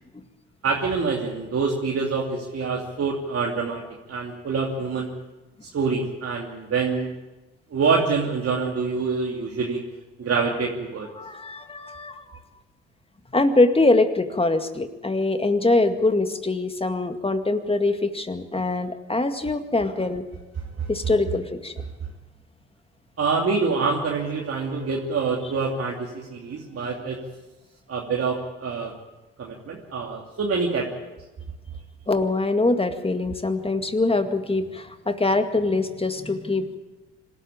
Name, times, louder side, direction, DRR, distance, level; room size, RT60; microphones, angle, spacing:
voice 1, 0.6-3.8 4.1-5.1 5.7-7.1 7.7-9.8 10.2-11.1 20.8-20.9 23.2-27.2 27.9-28.9 29.4-31.1, right 4 dB, 45° right, -2 dB, 3.0 m, -26 dB
voice 2, 11.2-12.2 13.3-20.2 20.9-21.7 32.1-36.8, left 2 dB, 15° left, 8 dB, 2.1 m, -23 dB
25.5 x 13.0 x 8.7 m, 1.1 s
hypercardioid pair, 50°, 32 cm